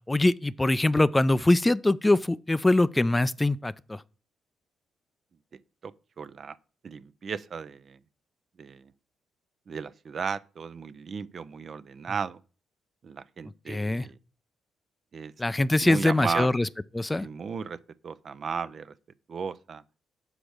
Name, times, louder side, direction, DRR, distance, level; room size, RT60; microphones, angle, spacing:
voice 1, 0.1-4.0 13.7-14.1 15.4-16.7 16.9-17.3, left 2 dB, 20° left, 0.4 m, -23 dB
voice 2, 6.2-6.6 6.8-8.0 8.6-8.9 9.7-12.4 13.0-14.2 15.1-15.3 15.8-16.7 17.2-17.8 18.0-18.9 19.3-19.8, right 6 dB, 50° right, 0.4 m, -35 dB
5.1 x 5.0 x 6.2 m
hypercardioid pair, 45°, 0 cm